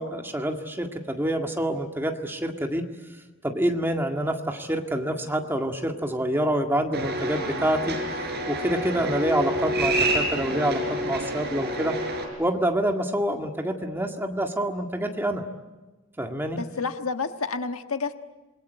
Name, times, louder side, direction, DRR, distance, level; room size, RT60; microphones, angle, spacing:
voice 1, 0.0-2.9 3.4-8.0 8.5-12.0 12.4-15.4 16.2-16.6, right 1 dB, 10° right, 3 dB, 1.9 m, -27 dB
sound 1, 6.9-12.2, right 1 dB, 50° right, 5.6 m, -28 dB
voice 2, 16.6-18.1, left 4 dB, 80° left, 7 dB, 1.5 m, -29 dB
28.0 x 21.5 x 9.2 m, 1.2 s
head